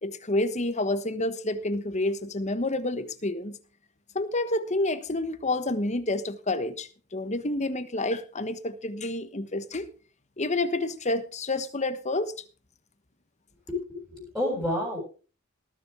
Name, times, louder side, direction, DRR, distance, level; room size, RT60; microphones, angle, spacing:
voice 1, 0.0-3.6 4.1-9.9 10.4-12.3, left 2 dB, 35° left, 1.2 m, -29 dB
voice 2, 13.7-15.0, left 1 dB, ahead, 6.8 m, -30 dB
18.5 x 7.5 x 5.0 m
head